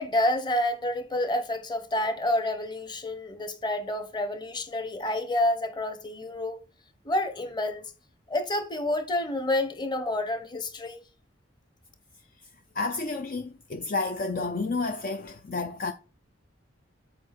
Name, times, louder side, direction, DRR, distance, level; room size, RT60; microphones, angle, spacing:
voice 1, 0.0-6.6 7.0-7.8 8.3-11.0, left 1 dB, 20° left, 1.1 m, -28 dB
voice 2, 12.7-15.9, left 3 dB, 45° left, 0.5 m, -30 dB
7.7 x 4.6 x 4.3 m
head